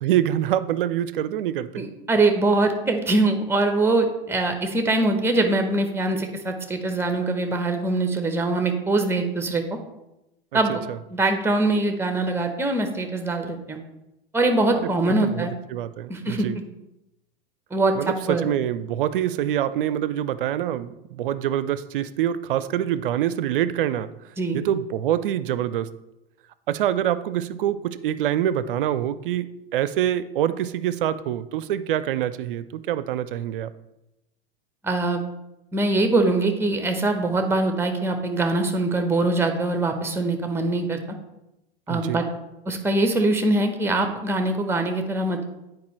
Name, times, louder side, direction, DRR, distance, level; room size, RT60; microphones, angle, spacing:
voice 1, 0.0-1.9 10.9-11.0 14.7-16.6 18.0-24.1 24.5-25.9 26.7-33.7 41.9-42.2, right 11 dB, 60° right, 15 dB, 0.4 m, -25 dB
voice 2, 1.8-9.6 10.5-10.8 11.1-13.8 14.3-15.5 16.1-16.5 17.7-17.9 18.3-18.5 24.4-24.6 34.8-35.2 35.7-41.0 41.9-42.2 42.7-45.5, right 2 dB, 10° right, 6 dB, 0.8 m, -23 dB
9.4 x 4.6 x 3.1 m, 0.92 s
figure-of-eight pair, 85°, 30 cm